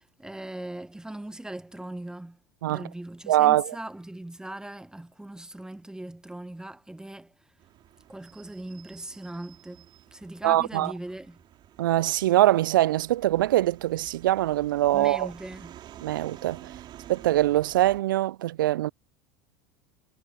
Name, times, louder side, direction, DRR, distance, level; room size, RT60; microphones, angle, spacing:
voice 1, 0.0-2.4 2.7-7.5 8.1-11.4 14.9-15.8, right 1 dB, 5° right, 1.4 m, -40 dB
voice 2, 3.3-3.7 10.4-10.9 11.8-15.3 16.0-16.7 17.1-18.9, right 15 dB, 70° right, 0.6 m, -23 dB
sound 1, 7.6-18.0, right 12 dB, 40° right, 3.2 m, -50 dB
figure-of-eight pair, 70°, 11 cm